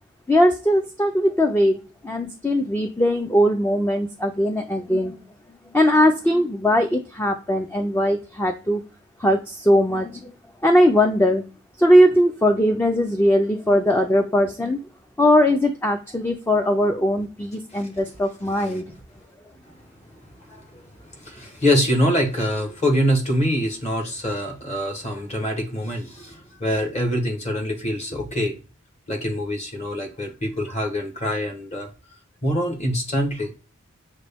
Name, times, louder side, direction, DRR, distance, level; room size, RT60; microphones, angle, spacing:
voice 1, 0.3-1.8 2.0-5.2 5.7-8.8 9.2-10.3 10.6-11.4 11.8-14.8 15.2-18.8, equal, 10° left, 0.3 m, -19 dB
voice 2, 18.4-18.8 20.5-20.9 21.2-28.5 29.1-31.9 32.4-33.5, equal, 30° left, 1.1 m, -24 dB
6.2 x 2.2 x 3.4 m
head